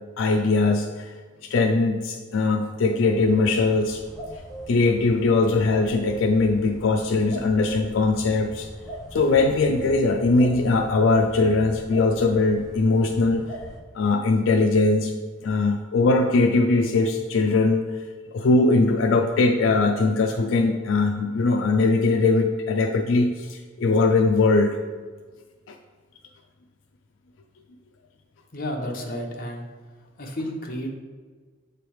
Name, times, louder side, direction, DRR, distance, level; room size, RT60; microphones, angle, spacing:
voice 1, 0.2-1.1 1.5-4.0 4.7-8.7 9.1-13.4 13.9-15.1 15.4-17.8 18.3-24.7 25.7-25.8, left 3 dB, 75° left, 4 dB, 0.4 m, -21 dB
sound 1, 3.0-13.8, right 1 dB, ahead, 0.8 m, -40 dB
voice 2, 28.5-29.7 30.2-30.9, equal, 45° left, 0 dB, 0.9 m, -31 dB
7.0 x 3.4 x 4.6 m, 1.4 s
head